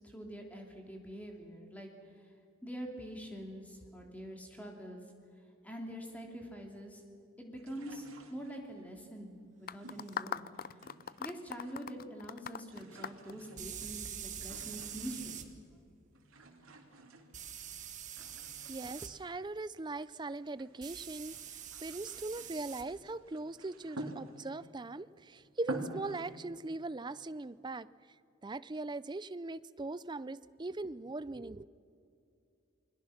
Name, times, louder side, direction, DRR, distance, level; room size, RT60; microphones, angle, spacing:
voice 1, 0.0-1.9 2.6-5.0 5.6-7.0 7.4-10.4 11.2-15.5, equal, 5° left, 1 dB, 3.1 m, -45 dB
sound 1, 7.6-8.9 9.8-11.3 11.5-12.1 12.4-15.5 16.2-17.8 18.2-20.8 21.2-24.7 25.2-25.3 25.6-26.3, right 1 dB, 80° right, 3.0 m, -49 dB
sound 2, 9.7-14.1, left 7 dB, 45° left, 0.5 m, -41 dB
sound 3, 10.1-10.2 13.6-15.5 17.3-19.1 20.8-22.9, right 9 dB, 35° right, 1.6 m, -45 dB
voice 2, 18.7-21.4 21.8-27.9 28.4-31.6, right 2 dB, 20° right, 16 dB, 0.5 m, -40 dB
29.5 x 21.5 x 5.9 m, 2.6 s
head